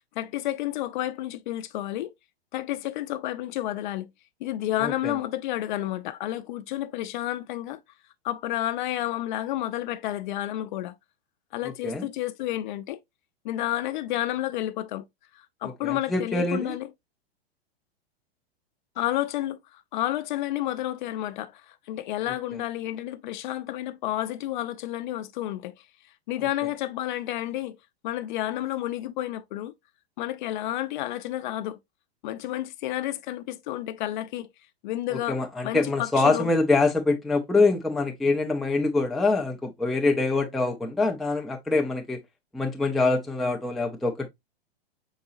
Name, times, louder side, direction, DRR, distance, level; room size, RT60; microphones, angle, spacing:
voice 1, 0.2-2.1 2.5-4.1 4.4-7.8 8.2-10.9 11.5-13.0 13.4-15.0 15.3-16.9 19.0-25.7 26.3-27.8 28.0-29.7 30.2-31.8 32.2-34.5 34.8-36.5, left 14 dB, 50° left, 0.5 m, -30 dB
voice 2, 4.8-5.1 11.8-12.1 15.8-16.7 35.3-42.2 42.5-44.3, left 3 dB, ahead, 0.4 m, -24 dB
5.2 x 4.0 x 2.4 m
hypercardioid pair, 105°, 31 cm